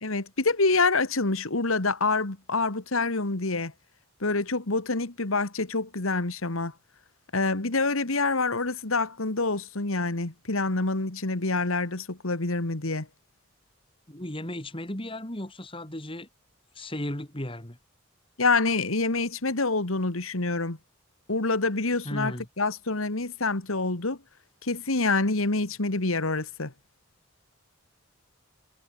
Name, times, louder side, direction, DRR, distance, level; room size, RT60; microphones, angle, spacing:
voice 1, 0.0-3.7 4.2-6.7 7.3-13.1 18.4-20.8 21.3-24.2 24.6-26.7, left 3 dB, 80° left, 2.1 m, -26 dB
voice 2, 14.1-16.3 16.7-17.8 22.0-22.5, left 1 dB, 25° left, 3.0 m, -35 dB
head